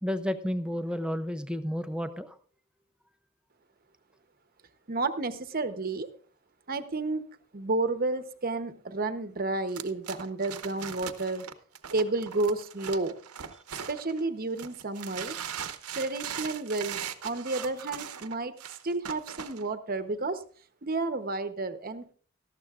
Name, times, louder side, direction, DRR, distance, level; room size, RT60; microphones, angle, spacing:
voice 1, 0.0-2.4, equal, 5° right, 9 dB, 0.5 m, -31 dB
voice 2, 4.9-6.1 6.7-7.2 7.5-11.4 11.9-13.1 13.9-15.3 16.0-18.5 18.8-20.4 20.8-22.1, right 3 dB, 40° right, 10 dB, 0.9 m, -31 dB
sound 1, 9.7-14.2 14.6-19.6, right 8 dB, 85° right, 0.9 m, -39 dB
18.5 x 13.5 x 2.4 m, 0.44 s
head